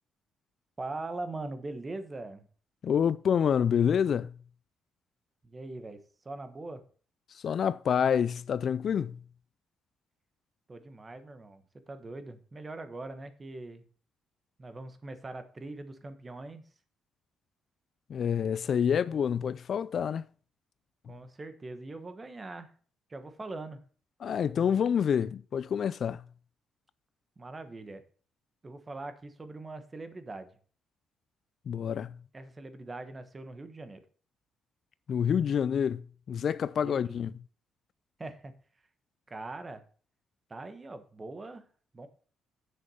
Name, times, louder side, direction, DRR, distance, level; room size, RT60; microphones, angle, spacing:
voice 1, 0.8-2.5 5.4-6.8 10.7-13.8 14.6-16.6 21.1-22.7 23.1-23.8 27.4-28.0 28.6-30.5 32.3-34.0 36.7-37.2 38.2-38.5 39.3-39.8 40.5-41.6 41.9-42.1, right 2 dB, 25° right, 1.3 m, -42 dB
voice 2, 2.8-4.3 7.3-9.2 18.1-20.2 24.2-26.2 31.7-32.2 35.1-36.0 36.3-37.3, left 8 dB, 55° left, 0.3 m, -27 dB
7.9 x 6.4 x 5.6 m
cardioid pair, 90°, 0 cm